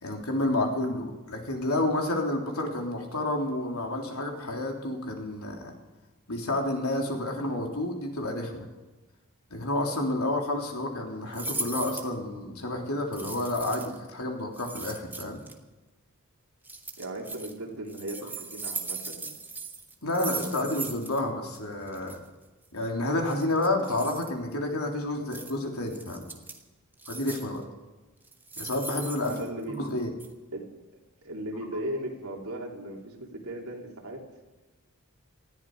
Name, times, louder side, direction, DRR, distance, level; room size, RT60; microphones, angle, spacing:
voice 1, 0.0-5.7 6.3-8.7 9.5-15.4 20.0-22.2 22.7-26.3 27.1-27.6 28.6-29.5 29.7-30.1, left 1 dB, 80° left, 1 dB, 3.5 m, -30 dB
sound 1, 11.3-12.1 13.1-14.0 14.5-15.5 16.6-17.5 17.9-21.2 21.5-21.6 21.9-22.2 23.3-24.3 25.3-25.5 25.9-26.6 27.0-27.6 28.2-29.9 30.2-30.3, right 3 dB, 10° right, 1.5 m, -38 dB
voice 2, 17.0-19.3 29.2-29.8 30.5-30.7 31.2-34.3, right 1 dB, 75° right, 0 dB, 3.4 m, -37 dB
19.5 x 14.0 x 4.9 m, 1.2 s
head